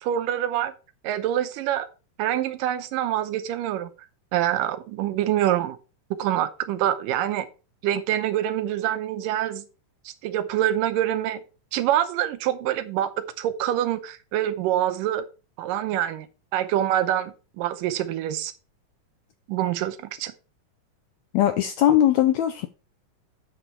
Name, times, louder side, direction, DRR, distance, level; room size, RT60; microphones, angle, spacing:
voice 1, 0.0-0.7 1.0-1.9 2.2-3.9 4.3-5.8 6.2-7.5 7.8-9.7 10.1-11.4 11.7-15.2 15.6-16.3 16.5-18.5 19.5-20.3, right 11 dB, 85° right, 11 dB, 2.4 m, -25 dB
voice 2, 21.3-22.7, left 11 dB, 80° left, 9 dB, 1.6 m, -20 dB
8.5 x 6.2 x 4.5 m, 0.32 s
omnidirectional pair, 3.9 m